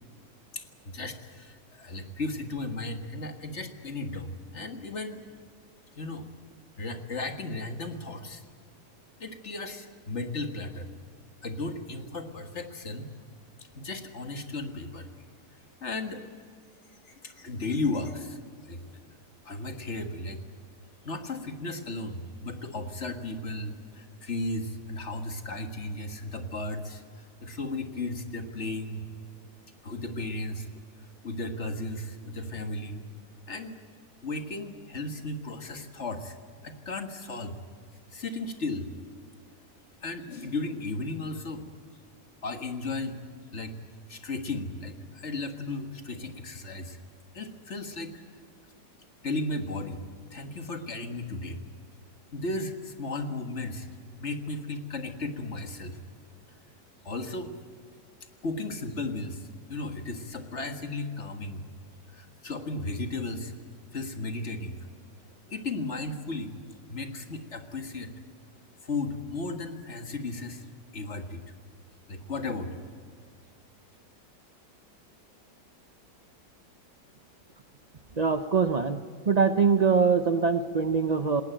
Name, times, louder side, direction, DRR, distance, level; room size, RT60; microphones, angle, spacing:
voice 1, 0.5-5.2 6.0-6.2 6.8-8.4 9.2-10.9 11.4-13.1 13.8-15.1 15.8-16.3 16.9-18.8 19.5-20.4 21.0-29.1 29.8-30.7 31.2-33.1 33.5-33.8 34.2-36.4 36.6-37.6 38.1-38.9 40.0-41.6 42.4-43.2 43.5-43.8 44.1-47.0 47.3-48.1 49.2-50.0 50.3-51.6 52.3-53.9 54.2-56.0 57.0-57.5 58.4-61.7 62.1-63.5 63.9-64.8 65.5-66.6 66.9-68.1 68.8-70.7 70.9-71.4 72.1-72.9, left 2 dB, 40° left, 6 dB, 1.9 m, -35 dB
voice 2, 78.2-79.0 79.2-81.4, right 5 dB, 45° right, 9 dB, 0.5 m, -23 dB
20.0 x 18.5 x 9.0 m, 2.1 s
omnidirectional pair, 1.9 m